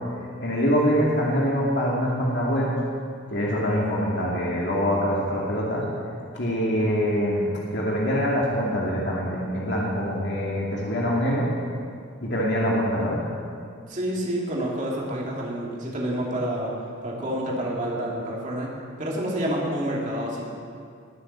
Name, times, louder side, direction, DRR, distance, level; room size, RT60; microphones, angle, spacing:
voice 1, 0.4-2.7 3.3-5.8 6.3-11.5 12.2-13.2, equal, 55° left, -4 dB, 2.5 m, -24 dB
voice 2, 13.9-16.7 17.0-18.7 19.0-20.4, right 1 dB, 35° right, -4 dB, 2.9 m, -28 dB
20.0 x 7.8 x 7.5 m, 2.2 s
head